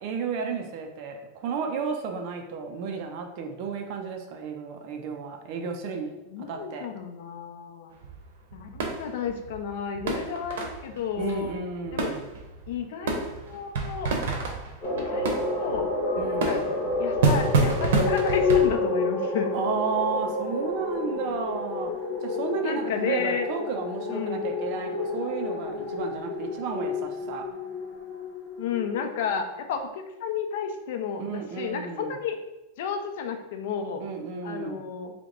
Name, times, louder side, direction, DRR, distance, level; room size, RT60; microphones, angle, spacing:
voice 1, 0.0-6.1 6.5-6.9 11.2-12.3 16.2-16.7 19.5-21.9 22.2-27.4 31.2-32.2 34.0-34.9, right 6 dB, 45° right, 4 dB, 0.6 m, -33 dB
voice 2, 6.3-7.9 8.5-11.5 11.9-12.2 12.7-14.1 14.9-15.3 15.6-15.9 16.2-16.6 17.0-19.5 22.6-23.5 24.1-24.5 28.6-32.4 32.8-34.0 34.4-35.1, left 6 dB, 65° left, 6 dB, 0.6 m, -32 dB
sound 1, 7.9-18.7, right 3 dB, 80° right, 0.9 m, -29 dB
sound 2, 14.8-29.4, left 3 dB, 30° left, 1.1 m, -29 dB
3.3 x 3.0 x 3.8 m, 0.99 s
supercardioid pair, 165°, 0 cm